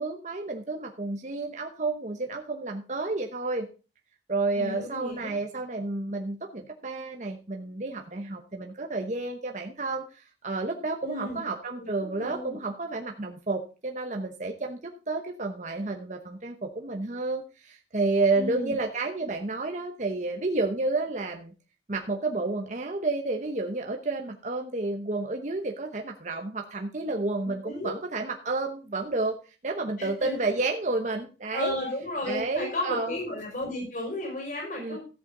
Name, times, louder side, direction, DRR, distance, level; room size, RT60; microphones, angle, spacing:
voice 1, 0.0-3.7 4.3-21.5 21.9-29.4 29.6-31.7 32.3-33.2 34.8-35.0, right 3 dB, 40° right, 2 dB, 0.9 m, -30 dB
voice 2, 4.5-5.3 11.0-11.4 12.2-12.6 18.3-18.7 27.1-27.2 27.4-27.9 30.0-30.4 31.5-35.0, left 1 dB, 45° left, -1 dB, 5.7 m, -33 dB
13.5 x 8.2 x 3.8 m, 0.33 s
head